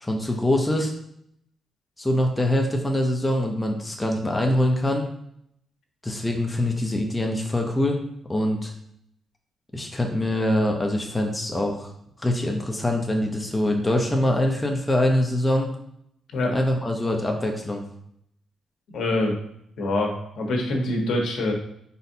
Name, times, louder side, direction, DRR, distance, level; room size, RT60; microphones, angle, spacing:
voice 1, 0.0-0.9 2.0-5.1 6.0-8.0 8.3-8.7 9.7-11.9 12.2-15.7 16.5-17.8, left 1 dB, 10° left, 1 dB, 0.5 m, -24 dB
voice 2, 18.9-19.3 19.8-21.5, left 1 dB, 70° left, 1 dB, 1.1 m, -25 dB
4.3 x 4.1 x 2.7 m, 0.72 s
cardioid pair, 150°, 0 cm